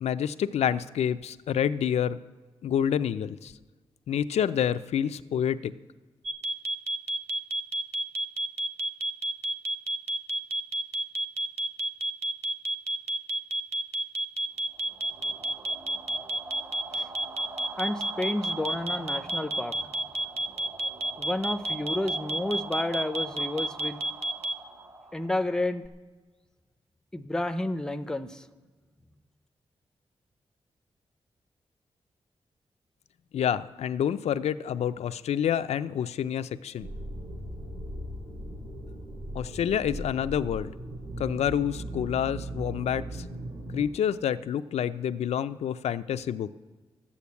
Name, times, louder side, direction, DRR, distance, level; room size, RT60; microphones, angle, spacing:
voice 1, 0.0-2.2 2.6-3.5 4.1-5.7 33.3-36.9 39.3-40.7 41.2-43.2 43.7-46.5, left 9 dB, 85° left, 12 dB, 0.4 m, -28 dB
sound 1, 6.2-24.5, right 2 dB, 85° right, 0.8 m, -29 dB
sound 2, 14.7-25.9, right 2 dB, 30° right, 0.9 m, -44 dB
voice 2, 17.8-19.9 21.2-24.0 25.1-25.8 27.1-28.5, left 1 dB, 5° left, 10 dB, 0.5 m, -31 dB
sound 3, 36.8-43.9, right 1 dB, 50° right, 5.7 m, -38 dB
12.0 x 8.5 x 8.3 m, 1.3 s
wide cardioid pair, 175°, 11 cm